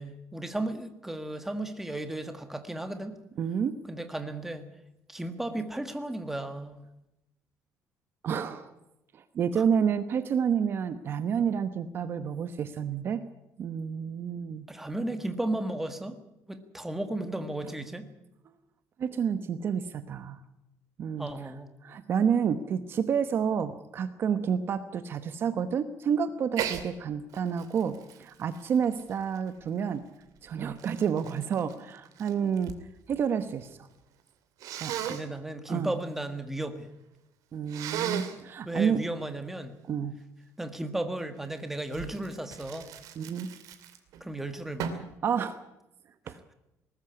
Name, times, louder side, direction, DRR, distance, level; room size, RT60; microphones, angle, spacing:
voice 1, 0.0-3.1 3.9-4.6 5.1-6.8 9.5-9.6 14.7-16.2 16.5-18.1 21.2-21.7 35.1-36.9 38.6-39.7 40.6-42.9 44.2-45.1, right 1 dB, 5° right, 8 dB, 1.5 m, -34 dB
voice 2, 3.4-3.8 8.2-8.7 9.1-13.2 13.6-14.7 19.0-20.4 21.0-21.5 21.8-30.0 30.4-32.8 33.1-33.7 34.8-35.1 35.7-35.9 37.5-39.0 39.9-40.2 43.2-43.5 45.2-45.6 46.3-46.4, right 7 dB, 40° right, 11 dB, 1.0 m, -29 dB
Sneeze, 26.5-26.9 27.3-29.7 30.4-32.8 33.1-33.7 34.6-35.2 37.7-38.4 41.9-44.2 44.8-45.1, right 9 dB, 70° right, 2.5 m, -36 dB
19.5 x 14.0 x 9.7 m, 0.90 s
cardioid pair, 170°, 6 cm